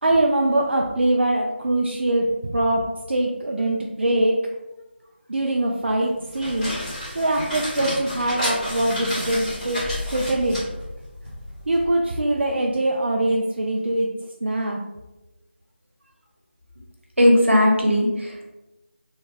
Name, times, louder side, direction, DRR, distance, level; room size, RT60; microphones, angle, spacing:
voice 1, 0.0-4.4 5.3-6.7 7.1-9.8 10.1-10.6 11.7-14.1 14.4-14.8, right 1 dB, 65° right, 0 dB, 0.4 m, -22 dB
sound 1, 6.2-11.8, equal, 5° left, 0.7 m, -31 dB
voice 2, 17.2-18.5, left 1 dB, 90° right, -1 dB, 1.0 m, -18 dB
3.1 x 2.1 x 3.3 m, 1.0 s
figure-of-eight pair, 165°, 6 cm